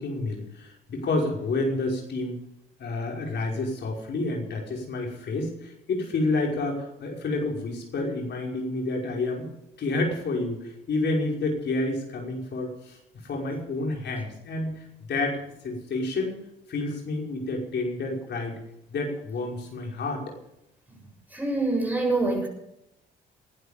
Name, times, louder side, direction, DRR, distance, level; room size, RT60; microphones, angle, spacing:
voice 1, 0.0-2.4 2.8-9.5 9.8-13.0 13.2-15.4 15.6-16.3 16.7-18.6 18.9-20.2, left 2 dB, 60° left, 0 dB, 5.6 m, -29 dB
voice 2, 21.3-22.5, right 2 dB, 10° right, 2 dB, 7.3 m, -25 dB
20.5 x 11.5 x 5.3 m, 0.82 s
cardioid pair, 90°, 20 cm